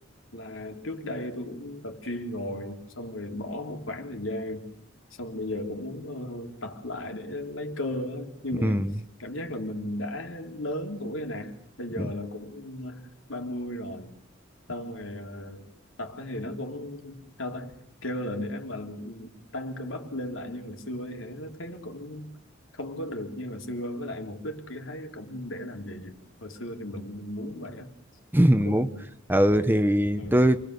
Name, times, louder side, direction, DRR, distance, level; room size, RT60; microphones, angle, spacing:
voice 1, 0.3-4.7 5.2-8.8 9.2-14.2 14.7-15.7 16.0-17.7 18.0-22.3 22.7-27.9 28.6-29.1 30.2-30.5, left 1 dB, 75° left, 3.5 m, -35 dB
voice 2, 8.6-8.9 12.0-12.1 28.3-28.9 29.3-30.6, equal, 10° right, 1.0 m, -21 dB
28.0 x 21.0 x 6.8 m
head